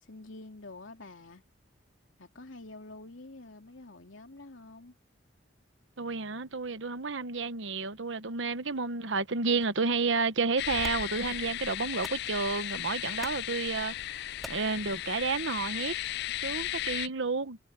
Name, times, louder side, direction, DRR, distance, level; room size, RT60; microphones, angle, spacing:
voice 1, 0.0-1.4 2.2-4.9, left 2 dB, 85° left, 2.8 m, -47 dB
voice 2, 6.0-14.2 14.5-15.9 16.4-17.6, right 4 dB, 75° right, 1.1 m, -31 dB
sound 1, 9.6-15.7, equal, ahead, 2.2 m, -52 dB
sound 2, 10.6-17.1, left 13 dB, 60° left, 0.3 m, -35 dB
head